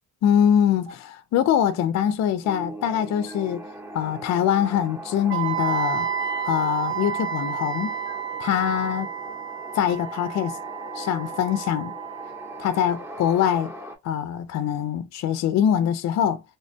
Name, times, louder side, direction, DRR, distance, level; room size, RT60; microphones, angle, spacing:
voice 1, 0.2-3.6 3.9-6.1 6.4-8.0 8.4-9.1 9.7-10.6 10.9-11.9 12.6-13.7 14.0-16.4, left 9 dB, 60° left, 0.4 m, -23 dB
Stream, 0.9-1.0 2.1-2.2 3.3-3.4 4.5-4.6 5.7-5.8 6.9-7.0 8.1-8.2 9.3-9.4 10.5-10.6 11.7-11.8 12.9-13.0 14.1-14.2 15.3-15.4, right 2 dB, 75° right, 2.1 m, -42 dB
sound 1, 2.4-14.0, right 1 dB, 10° right, 0.8 m, -39 dB
Wind instrument woodwind instrument, 5.3-13.2, right 9 dB, 40° right, 0.5 m, -31 dB
3.3 x 2.1 x 2.5 m
cardioid pair, 95°, 31 cm